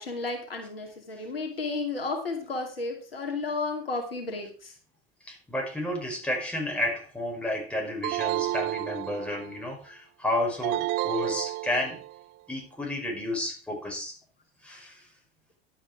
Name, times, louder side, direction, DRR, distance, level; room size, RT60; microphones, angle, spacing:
voice 1, 0.0-4.7, left 3 dB, 80° left, 3 dB, 2.5 m, -33 dB
voice 2, 5.2-12.0 12.5-14.2 14.6-15.1, left 1 dB, 5° left, -1 dB, 5.3 m, -31 dB
sound 1, 8.0-9.6 10.6-12.2, right 16 dB, 35° right, 0.5 m, -31 dB
11.0 x 8.6 x 4.7 m, 0.37 s
figure-of-eight pair, 75°, 29 cm